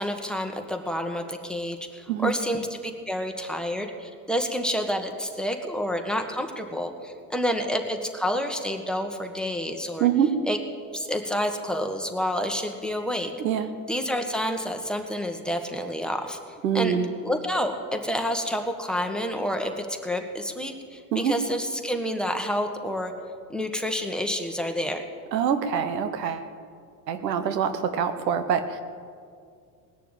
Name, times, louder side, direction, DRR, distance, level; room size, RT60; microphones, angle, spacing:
voice 1, 0.0-10.1 10.5-10.6 10.9-13.3 13.9-16.4 16.7-17.0 17.2-23.1 23.5-25.0, equal, ahead, 5 dB, 1.6 m, -29 dB
voice 2, 10.0-10.3 13.4-13.7 16.6-17.1 21.1-21.3 25.3-26.5 27.1-28.8, right 8 dB, 85° right, 10 dB, 1.1 m, -25 dB
19.5 x 6.8 x 9.0 m, 2.2 s
hypercardioid pair, 80°, 48 cm